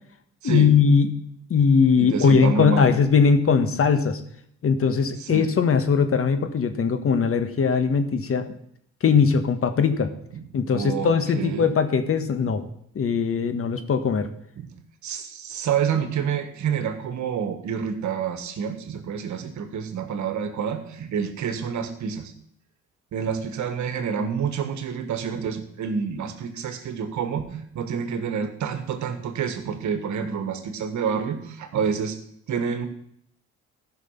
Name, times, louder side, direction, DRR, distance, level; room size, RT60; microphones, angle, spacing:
voice 1, 0.4-1.2 1.5-4.2 4.6-8.5 9.0-10.1 10.5-12.6 12.9-14.3, left 6 dB, 45° left, 9 dB, 1.3 m, -20 dB
voice 2, 2.0-2.9 5.2-5.5 10.3-10.4 10.7-11.7 14.6-14.7 15.0-22.3 23.1-32.2 32.5-32.9, right 7 dB, 70° right, 8 dB, 1.6 m, -28 dB
14.0 x 6.0 x 5.8 m, 0.69 s
cardioid pair, 90°, 30 cm